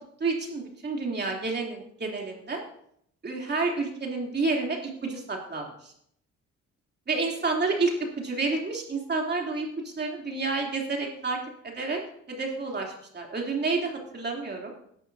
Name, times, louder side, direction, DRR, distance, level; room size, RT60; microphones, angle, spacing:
voice 1, 0.2-2.6 3.2-5.9 7.1-11.4 11.6-12.0 12.3-14.7, right 3 dB, 35° right, 0 dB, 3.2 m, -29 dB
17.0 x 11.5 x 2.8 m, 0.70 s
cardioid pair, 90°, 30 cm